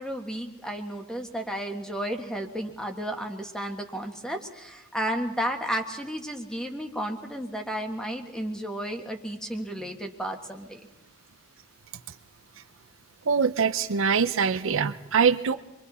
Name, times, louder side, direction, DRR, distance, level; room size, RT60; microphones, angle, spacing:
voice 1, 0.0-10.8, equal, 5° left, 3 dB, 1.7 m, -33 dB
voice 2, 13.3-15.5, right 6 dB, 70° right, 10 dB, 0.6 m, -23 dB
27.0 x 23.0 x 4.2 m, 0.94 s
head